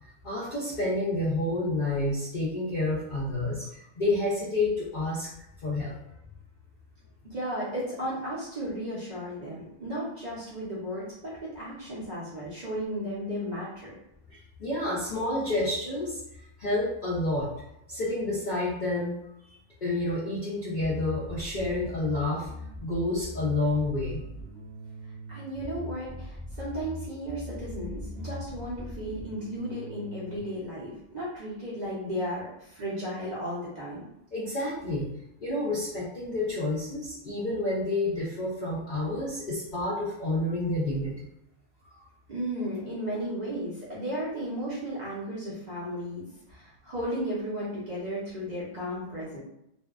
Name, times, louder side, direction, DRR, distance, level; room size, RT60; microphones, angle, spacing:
voice 1, 0.2-5.3 5.6-6.0 14.3-16.2 16.6-17.5 17.9-19.1 19.8-22.5 22.8-24.2 34.3-35.1 35.4-41.1, left 2 dB, 60° left, -7 dB, 0.5 m, -29 dB
voice 2, 7.2-14.0 25.3-34.0 42.3-49.4, equal, 45° right, -8 dB, 0.6 m, -34 dB
Bass guitar, 20.8-30.4, left 1 dB, 15° left, 0.7 m, -41 dB
2.6 x 2.2 x 2.3 m, 0.82 s
omnidirectional pair, 1.4 m